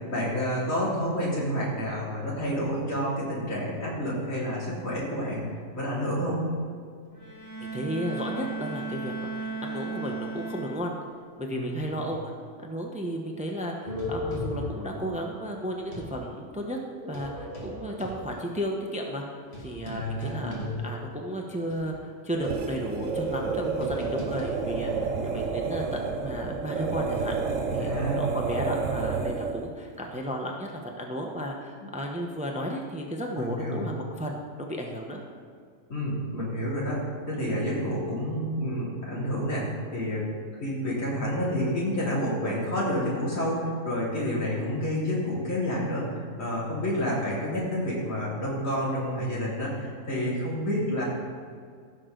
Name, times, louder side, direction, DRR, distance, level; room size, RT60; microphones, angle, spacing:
voice 1, 0.0-5.4 5.7-6.5 11.5-12.0 19.8-20.7 27.8-28.3 33.4-33.8 35.9-40.3 40.6-51.0, equal, 80° left, -7 dB, 3.4 m, -29 dB
Bowed string instrument, 7.1-11.2, right 3 dB, 25° left, 1.6 m, -36 dB
voice 2, 7.6-11.0 11.4-12.3 12.6-16.8 17.1-19.2 19.6-27.3 27.7-35.2, equal, 5° right, 1 dB, 0.8 m, -34 dB
sound 1, 13.9-16.2 16.9-21.3 21.7-21.8 22.4-26.0, left 1 dB, 50° left, 2.1 m, -39 dB
sound 2, 22.3-29.7, right 4 dB, 75° right, 1.2 m, -30 dB
15.5 x 6.4 x 3.9 m, 2.1 s
omnidirectional pair, 1.4 m